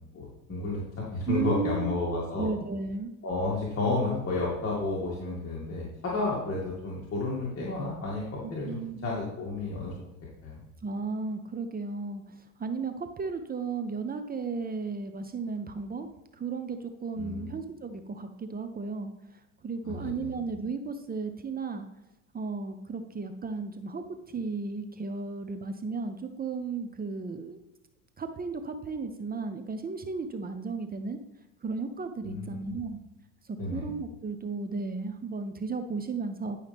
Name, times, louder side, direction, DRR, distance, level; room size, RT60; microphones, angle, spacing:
voice 1, 0.1-2.5 3.2-10.1 10.4-10.6 17.1-17.5 19.8-20.3 32.2-32.8 33.6-33.9, left 2 dB, 35° left, -6 dB, 2.5 m, -32 dB
voice 2, 1.3-2.0 2.4-3.1 8.7-9.1 10.8-16.1 16.3-21.9 22.3-27.6 28.2-31.2 31.6-33.0 33.5-36.6, right 4 dB, 25° right, 7 dB, 0.7 m, -34 dB
10.5 x 5.5 x 3.6 m, 0.93 s
supercardioid pair, 95°, 39 cm